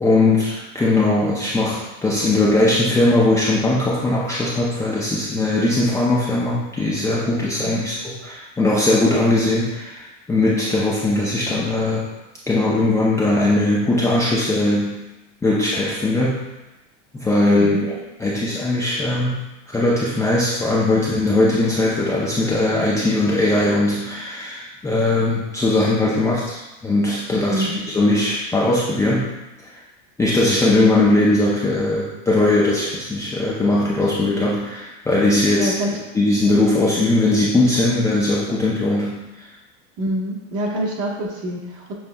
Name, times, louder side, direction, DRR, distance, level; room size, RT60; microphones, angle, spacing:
voice 1, 0.0-12.0 12.5-14.9 15.4-16.4 17.1-17.9 18.2-19.4 19.7-29.3 30.2-35.7 36.1-39.2, left 2 dB, 10° left, -7 dB, 0.5 m, -19 dB
voice 2, 7.6-7.9 17.6-17.8 27.4-27.8 35.5-36.0 40.0-41.9, right 1 dB, 40° right, -1 dB, 1.2 m, -26 dB
7.2 x 3.1 x 2.3 m, 1.0 s
supercardioid pair, 120°, 38 cm